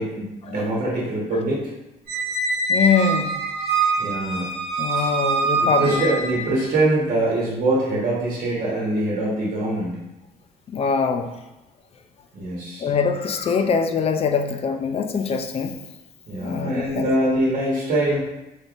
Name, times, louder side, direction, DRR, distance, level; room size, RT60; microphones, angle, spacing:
voice 1, 0.0-1.6 4.0-4.5 5.6-10.0 12.3-12.9 16.3-18.2, right 1 dB, 50° right, -5 dB, 1.2 m, -23 dB
Squeak, 2.1-6.5, right 3 dB, 75° right, 1.1 m, -24 dB
voice 2, 2.7-3.4 4.8-6.0 10.7-11.3 12.8-15.8 16.4-17.1, left 5 dB, 35° left, 7 dB, 0.4 m, -23 dB
4.0 x 3.4 x 2.5 m, 0.98 s
cardioid pair, 110°, 17 cm